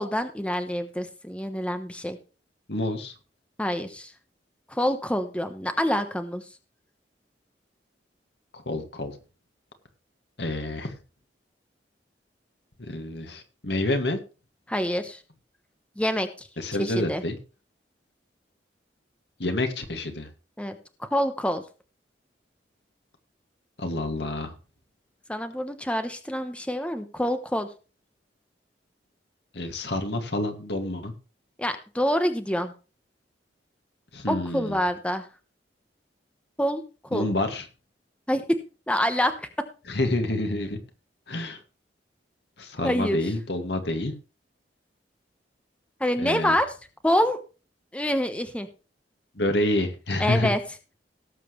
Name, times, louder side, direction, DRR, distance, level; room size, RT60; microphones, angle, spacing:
voice 1, 0.0-2.2 3.6-4.1 4.7-6.4 14.7-15.2 16.0-16.5 16.8-17.2 20.6-21.6 25.3-27.7 31.6-32.7 34.3-35.3 36.6-37.3 38.3-38.4 38.9-39.5 42.8-43.2 46.0-46.7 47.0-47.4 47.9-48.7 50.2-50.6, equal, 5° left, 8 dB, 1.0 m, -26 dB
voice 2, 2.7-3.1 8.5-9.2 10.4-10.9 12.8-14.2 16.6-17.4 19.4-20.3 23.8-24.5 29.5-31.1 34.1-34.8 37.1-37.7 39.9-40.8 41.3-41.6 42.6-44.1 46.2-46.6 49.3-50.5, left 1 dB, 70° left, 6 dB, 2.1 m, -28 dB
18.0 x 7.6 x 3.2 m, 0.33 s
head